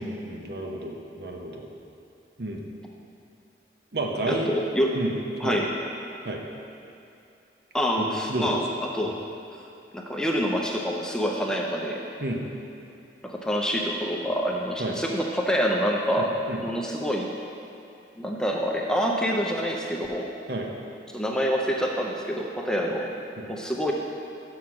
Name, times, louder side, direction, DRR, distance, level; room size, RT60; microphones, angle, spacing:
voice 1, 0.0-1.7 2.4-2.6 3.9-4.5 4.9-5.1 5.4-5.6 6.2-6.4 8.0-8.6 12.2-12.4 14.8-14.9 16.2-16.6 20.5-20.7 23.4-23.5, right 1 dB, 60° right, 1 dB, 0.8 m, -31 dB
voice 2, 4.3-4.9 5.4-5.7 7.7-9.1 9.9-12.0 13.2-16.4 16.6-17.3 18.2-20.3 21.1-23.1 23.5-23.9, equal, 5° left, -1 dB, 0.5 m, -26 dB
6.3 x 5.9 x 5.8 m, 2.7 s
head